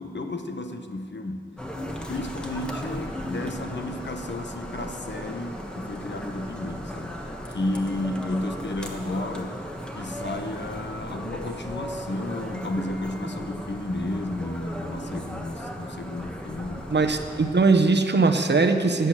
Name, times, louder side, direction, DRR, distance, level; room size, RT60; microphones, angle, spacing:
voice 1, 0.0-1.5 2.1-7.2 7.5-9.7 10.0-17.1, left 2 dB, 70° left, 6 dB, 0.9 m, -32 dB
sound 1, 1.6-17.5, equal, 5° left, 1.3 m, -36 dB
voice 2, 16.9-19.1, right 3 dB, 65° right, 6 dB, 0.8 m, -20 dB
10.5 x 8.2 x 7.3 m, 2.3 s
wide cardioid pair, 60°, 19 cm